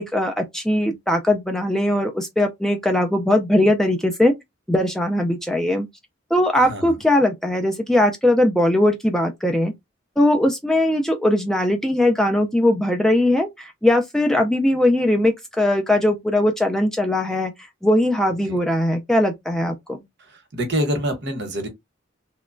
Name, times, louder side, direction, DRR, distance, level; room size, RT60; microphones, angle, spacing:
voice 1, 0.0-4.3 4.7-5.9 6.3-9.7 10.2-17.5 17.8-20.0, left 1 dB, 5° left, 0.3 m, -20 dB
voice 2, 6.6-7.0 18.5-18.6 20.3-21.7, equal, 60° right, 0.9 m, -26 dB
2.9 x 2.2 x 2.5 m
head